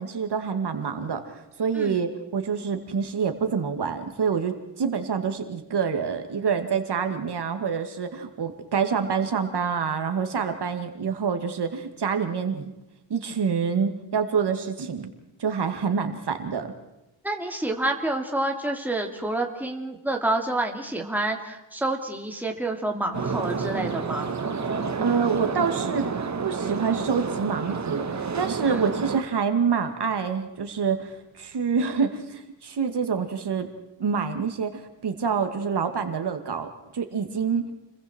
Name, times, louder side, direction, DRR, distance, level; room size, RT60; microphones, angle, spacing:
voice 1, 0.0-12.6 13.1-15.1 15.4-16.7 24.6-24.7 25.0-26.1 26.4-33.7 34.0-37.7, right 6 dB, 55° right, 6 dB, 2.3 m, -27 dB
voice 2, 17.2-24.3 28.7-28.8, right 2 dB, 5° right, 2 dB, 2.8 m, -28 dB
sound 1, 23.1-29.2, right 5 dB, 35° right, 1.7 m, -29 dB
30.0 x 23.0 x 4.5 m, 0.96 s
wide cardioid pair, 150°, 46 cm